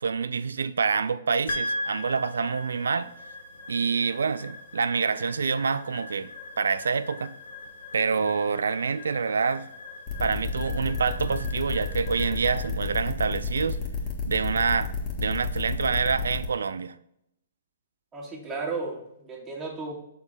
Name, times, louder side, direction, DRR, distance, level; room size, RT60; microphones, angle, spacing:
voice 1, 0.0-3.1 3.7-6.3 6.6-7.3 7.9-9.7 10.2-13.8 14.2-14.9 15.2-16.9, right 5 dB, 80° right, 0.4 m, -26 dB
sound 1, 1.5-15.8, left 1 dB, 70° left, 1.3 m, -40 dB
sound 2, 10.1-16.5, left 5 dB, 30° left, 1.7 m, -31 dB
voice 2, 18.1-19.9, right 3 dB, 15° right, 2.1 m, -34 dB
7.0 x 3.8 x 3.9 m
hypercardioid pair, 130°, 0 cm